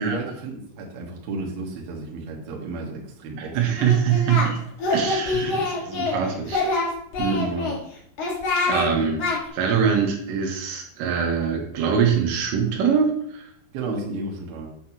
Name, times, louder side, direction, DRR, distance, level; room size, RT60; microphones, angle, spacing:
voice 1, 0.0-3.9 5.5-5.7 7.2-7.7 13.7-14.7, right 3 dB, 60° right, -2 dB, 2.9 m, -33 dB
voice 2, 3.4-4.6 4.9-6.9 7.2-7.5 8.5-13.4, right 7 dB, 80° right, 0 dB, 3.7 m, -23 dB
Singing, 3.8-4.5 4.8-6.2 6.5-7.8 8.2-8.9 9.2-9.4, left 3 dB, 60° left, 1.7 m, -25 dB
8.9 x 7.8 x 2.9 m, 0.68 s
omnidirectional pair, 5.9 m